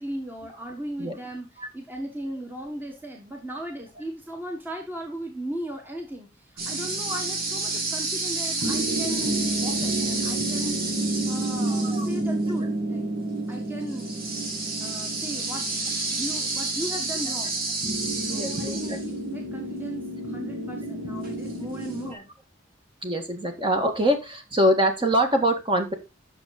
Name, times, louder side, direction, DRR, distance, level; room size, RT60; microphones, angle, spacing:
voice 1, 0.0-1.5 1.7-13.1 13.5-14.2 14.8-17.6 18.3-22.3 23.5-23.7, equal, 10° right, 2 dB, 1.5 m, -37 dB
sound 1, 6.6-22.1, right 2 dB, 55° right, 2.8 m, -28 dB
voice 2, 11.7-12.1 18.3-19.0 22.1-22.2 23.0-25.9, equal, 25° right, 5 dB, 1.8 m, -24 dB
8.4 x 6.6 x 4.1 m, 0.25 s
head